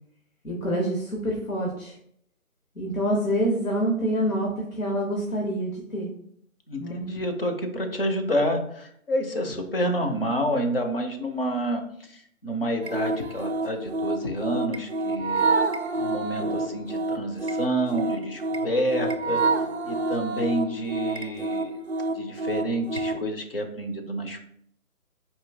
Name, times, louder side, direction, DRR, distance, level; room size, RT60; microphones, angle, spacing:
voice 1, 0.4-1.9 2.7-6.1 6.8-7.0, equal, 70° left, -2 dB, 1.4 m, -26 dB
voice 2, 6.7-11.8 12.1-15.5 15.9-19.4 19.8-21.7 22.2-24.4, equal, 40° left, 4 dB, 0.7 m, -28 dB
Octopus Game, 12.8-23.2, right 3 dB, 50° right, 0.5 m, -28 dB
4.4 x 2.6 x 3.4 m, 0.68 s
figure-of-eight pair, 155°, 43 cm